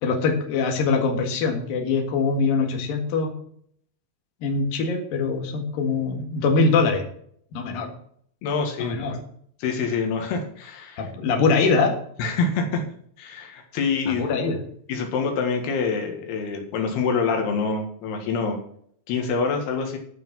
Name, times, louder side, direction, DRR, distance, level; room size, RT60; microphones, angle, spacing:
voice 1, 0.0-3.3 4.4-7.0 7.5-7.9 8.8-9.2 11.0-11.9 14.1-14.6, left 4 dB, 65° left, 3 dB, 3.5 m, -23 dB
voice 2, 8.4-9.0 9.6-11.1 12.2-12.8 13.2-14.3 14.9-18.6 19.1-20.0, left 5 dB, 85° left, 3 dB, 3.7 m, -26 dB
12.5 x 5.9 x 7.3 m, 0.63 s
omnidirectional pair, 4.5 m